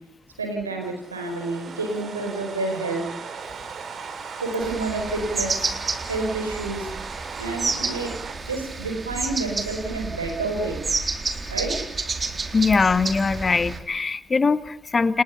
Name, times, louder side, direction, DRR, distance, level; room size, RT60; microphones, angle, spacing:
voice 1, 0.4-3.1 4.4-5.6 6.1-6.9 7.4-8.2 8.5-10.8 11.5-11.8, right 3 dB, 85° right, 4 dB, 4.9 m, -29 dB
sound 1, 0.8-10.0, right 5 dB, 50° right, 4.7 m, -38 dB
sound 2, 4.6-13.8, right 4 dB, 35° right, 3.9 m, -30 dB
voice 2, 12.5-15.2, left 4 dB, 35° left, 12 dB, 1.9 m, -21 dB
29.5 x 29.5 x 5.8 m, 0.72 s
figure-of-eight pair, 40°, 0 cm